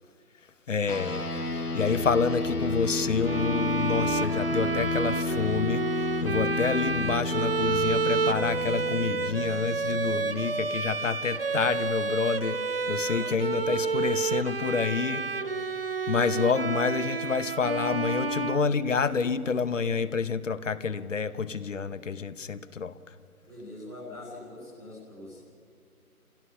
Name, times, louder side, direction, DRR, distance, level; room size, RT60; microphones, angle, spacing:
voice 1, 0.7-15.3 15.6-15.7 16.1-22.9, left 5 dB, 55° left, 15 dB, 0.9 m, -28 dB
sound 1, 0.9-10.6, left 2 dB, 80° left, 2.0 m, -32 dB
Bowed string instrument, 3.2-19.3, right 4 dB, 40° right, 0.6 m, -30 dB
voice 2, 13.0-13.8 23.4-25.4, left 2 dB, ahead, -16 dB, 0.7 m, -43 dB
26.5 x 16.5 x 6.7 m, 2.3 s
figure-of-eight pair, 150°, 45 cm